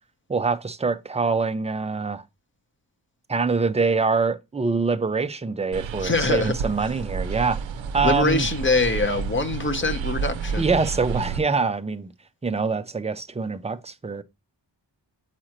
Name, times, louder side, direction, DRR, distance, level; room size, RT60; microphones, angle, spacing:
voice 1, 0.3-2.2 3.3-7.6 7.9-8.5 10.6-12.1 12.4-14.2, right 4 dB, 15° right, 0.4 m, -24 dB
sound 1, 5.7-11.4, right 6 dB, 85° right, 0.6 m, -30 dB
voice 2, 6.0-6.5 8.0-10.7, left 3 dB, 25° left, 0.8 m, -23 dB
7.5 x 4.9 x 2.9 m
wide cardioid pair, 125°, 45 cm